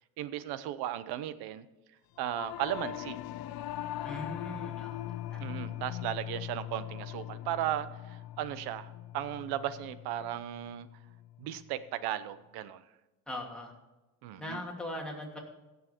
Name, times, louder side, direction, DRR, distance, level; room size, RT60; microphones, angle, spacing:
voice 1, 0.2-1.7 2.2-3.2 5.4-10.9 11.4-12.8 14.2-14.6, right 12 dB, 80° right, 14 dB, 0.9 m, -36 dB
Singing / Musical instrument, 2.2-11.7, left 13 dB, 70° left, 0.7 m, -41 dB
voice 2, 4.0-5.0 5.3-5.4 13.3-13.7 14.4-15.4, left 1 dB, ahead, -2 dB, 2.7 m, -39 dB
16.5 x 6.8 x 4.4 m, 1.1 s
cardioid pair, 115°, 38 cm